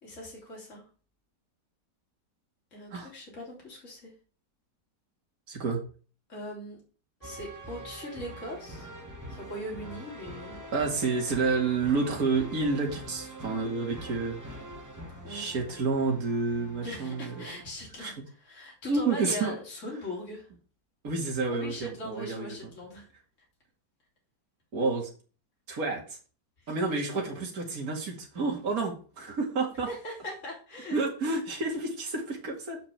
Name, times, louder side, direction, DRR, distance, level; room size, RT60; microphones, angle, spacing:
voice 1, 0.0-0.8 2.7-4.1 6.3-6.8 7.2-8.9 9.3-10.6 15.2-15.5 16.8-20.5 21.5-23.1 26.6-26.7 29.9-31.0, left 1 dB, 45° left, -3 dB, 3.7 m, -40 dB
voice 2, 5.5-5.8 10.7-14.4 15.3-17.5 18.0-18.1 18.9-19.5 21.0-22.6 24.7-25.1 25.7-26.0 26.7-29.9 30.9-32.8, right 4 dB, 55° right, 0 dB, 2.8 m, -29 dB
sound 1, 7.2-17.7, right 1 dB, 10° right, 1.6 m, -44 dB
7.3 x 6.8 x 7.4 m, 0.39 s
omnidirectional pair, 1.9 m